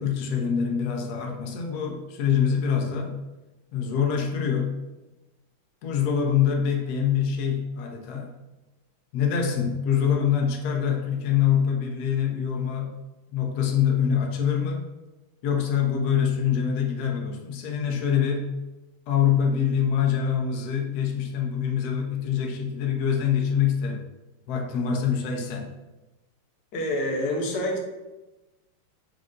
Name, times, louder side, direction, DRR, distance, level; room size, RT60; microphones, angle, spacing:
voice 1, 0.0-3.2 3.7-4.8 5.8-8.3 9.1-13.0 13.3-14.9 15.4-18.5 19.1-24.0 24.5-25.7, left 8 dB, 85° left, 1 dB, 0.8 m, -25 dB
voice 2, 26.7-27.8, left 1 dB, 65° left, 1 dB, 1.2 m, -27 dB
5.0 x 2.5 x 3.6 m, 1.1 s
omnidirectional pair, 2.3 m